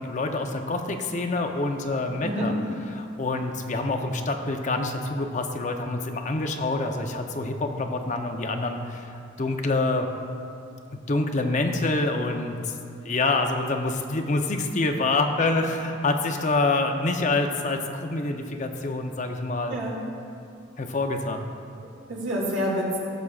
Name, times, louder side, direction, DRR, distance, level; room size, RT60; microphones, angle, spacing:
voice 1, 0.0-2.5 2.9-10.1 10.9-12.7 13.0-19.7 20.8-21.4, left 2 dB, 40° left, 4 dB, 0.6 m, -26 dB
voice 2, 21.8-23.0, equal, 75° right, -4 dB, 2.2 m, -28 dB
17.0 x 7.2 x 2.4 m, 2.5 s
head